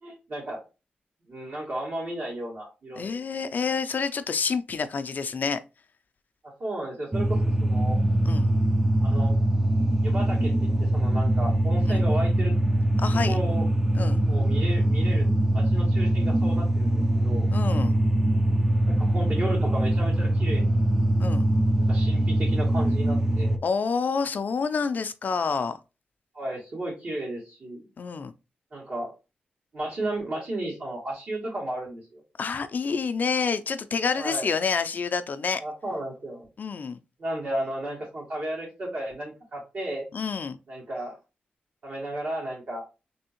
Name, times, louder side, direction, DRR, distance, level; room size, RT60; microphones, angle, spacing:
voice 1, 0.0-0.6 1.3-3.2 6.6-8.0 9.0-9.4 10.0-12.5 13.2-13.7 14.3-17.5 18.9-20.8 21.8-23.6 26.3-27.8 28.7-29.1 29.7-32.2 34.2-34.5 35.6-36.5 37.2-40.1 40.7-41.2 41.8-42.9, right 1 dB, 65° right, 2.1 m, -34 dB
voice 2, 3.0-5.6 8.2-8.5 11.9-12.0 13.0-13.4 13.9-14.2 17.5-17.9 21.2-21.5 23.6-25.8 28.0-28.3 32.4-35.6 36.6-37.0 40.1-40.6, left 5 dB, 55° left, 0.3 m, -28 dB
sound 1, 7.1-23.6, right 1 dB, 15° right, 0.4 m, -23 dB
3.4 x 2.7 x 2.9 m
cardioid pair, 75°, 3 cm